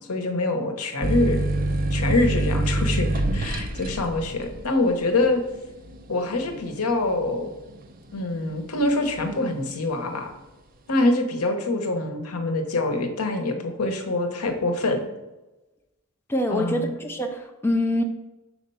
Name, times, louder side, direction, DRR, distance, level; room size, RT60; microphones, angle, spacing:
voice 1, 0.1-1.5 1.9-5.4 6.1-7.5 8.1-10.3 10.9-15.0 16.5-16.9, left 2 dB, 80° left, 5 dB, 0.9 m, -25 dB
sound 1, 1.0-8.3 8.7-9.4, right 1 dB, 40° right, 0.6 m, -26 dB
voice 2, 16.3-18.0, left 1 dB, 10° left, 3 dB, 0.4 m, -25 dB
4.8 x 4.3 x 5.5 m, 1.0 s
head